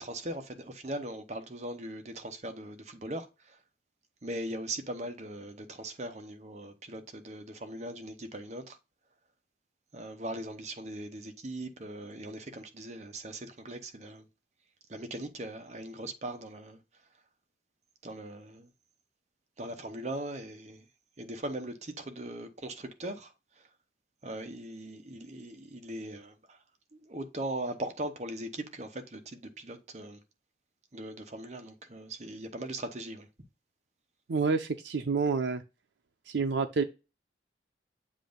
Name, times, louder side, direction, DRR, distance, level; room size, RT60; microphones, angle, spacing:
voice 1, 0.0-3.6 4.2-8.8 9.9-14.2 14.9-16.8 18.0-18.7 19.6-20.8 21.2-23.3 24.2-26.6 26.9-30.2 30.9-33.3, right 1 dB, 40° right, 0.9 m, -40 dB
voice 2, 34.3-35.6 36.3-36.8, right 4 dB, 80° right, 0.5 m, -28 dB
7.4 x 2.6 x 5.1 m
head